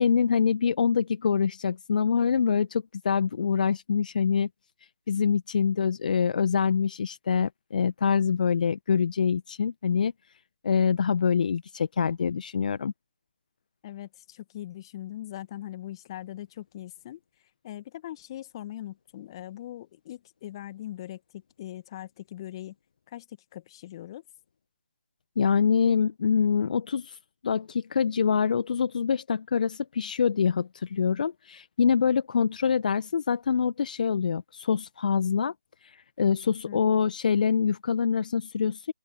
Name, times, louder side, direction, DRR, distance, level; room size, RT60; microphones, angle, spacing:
voice 1, 0.0-4.5 5.1-10.1 10.6-12.9 25.4-27.2 27.4-35.5 36.2-38.9, left 6 dB, 40° left, 1.4 m, -25 dB
voice 2, 13.8-17.2 17.6-22.8 23.1-24.2 36.7-36.8, left 13 dB, 20° left, 1.7 m, -41 dB
open air
figure-of-eight pair, 155°, 7 cm